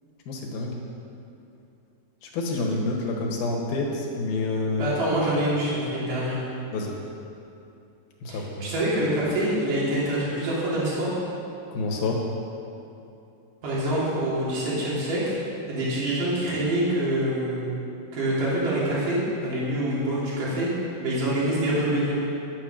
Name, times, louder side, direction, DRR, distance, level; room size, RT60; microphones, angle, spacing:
voice 1, 0.3-0.8 2.2-4.9 6.7-7.0 8.2-8.7 11.7-12.2, left 3 dB, 70° left, -1 dB, 3.2 m, -28 dB
voice 2, 4.8-6.4 8.3-11.2 13.6-15.4 15.7-17.7 18.1-22.1, right 1 dB, 55° right, -8 dB, 4.5 m, -26 dB
11.0 x 9.2 x 6.6 m, 2.7 s
omnidirectional pair, 4.6 m